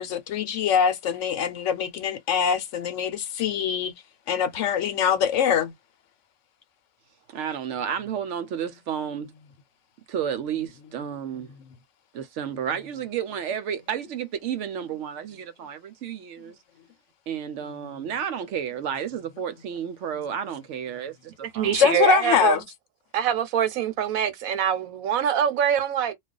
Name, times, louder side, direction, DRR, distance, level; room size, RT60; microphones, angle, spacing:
voice 1, 0.0-3.9 4.3-5.7 21.7-22.6, left 8 dB, 65° left, 0.9 m, -23 dB
voice 2, 7.3-9.3 10.1-11.5 12.1-16.6 17.3-21.8, right 8 dB, 70° right, 0.8 m, -31 dB
voice 3, 21.4-22.6 23.1-26.1, right 9 dB, 85° right, 1.1 m, -24 dB
2.4 x 2.3 x 3.7 m
omnidirectional pair, 1.4 m